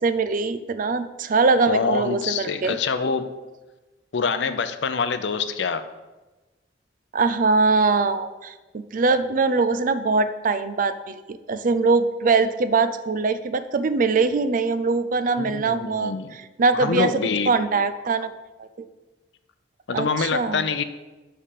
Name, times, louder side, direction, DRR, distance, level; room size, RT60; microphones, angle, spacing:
voice 1, 0.0-2.8 7.1-17.1 17.5-18.3 18.6-18.9 19.9-20.6, right 4 dB, 45° right, 12 dB, 0.4 m, -22 dB
voice 2, 1.7-3.3 4.1-5.8 15.4-16.3 16.7-17.5 19.9-20.8, left 5 dB, 65° left, 11 dB, 0.5 m, -25 dB
5.6 x 5.5 x 6.5 m, 1.2 s
head